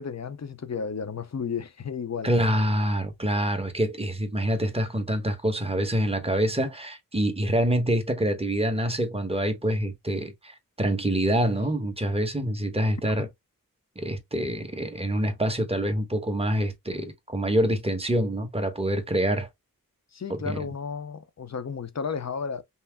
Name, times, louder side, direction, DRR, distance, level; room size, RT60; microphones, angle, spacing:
voice 1, 0.0-2.3 13.2-13.3 20.1-22.6, left 6 dB, 50° left, 0.7 m, -33 dB
voice 2, 2.2-13.3 14.0-19.5 20.3-20.6, right 1 dB, 15° right, 1.2 m, -26 dB
5.6 x 2.0 x 3.4 m
wide cardioid pair, 75°, 34 cm